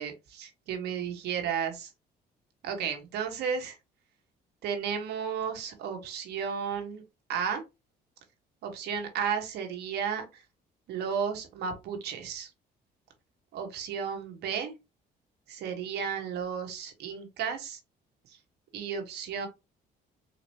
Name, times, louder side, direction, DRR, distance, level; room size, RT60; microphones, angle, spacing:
voice 1, 0.0-1.9 2.6-3.8 4.6-7.0 7.3-7.6 8.6-10.4 10.9-12.5 13.5-14.8 15.5-17.8 18.7-19.5, right 7 dB, 75° right, 1.4 m, -33 dB
4.2 x 2.9 x 2.8 m
cardioid pair, 110°, 17 cm